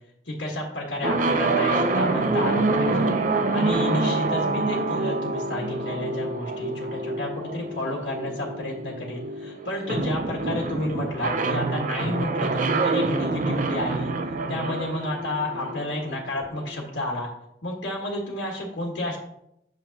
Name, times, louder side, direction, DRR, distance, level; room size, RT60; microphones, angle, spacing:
voice 1, 0.2-3.1 3.5-14.1 14.5-17.3 17.6-19.2, left 1 dB, 75° left, -2 dB, 1.5 m, -31 dB
sound 1, 1.0-16.8, right 3 dB, 45° right, 0.6 m, -26 dB
8.0 x 6.9 x 2.8 m, 0.79 s
head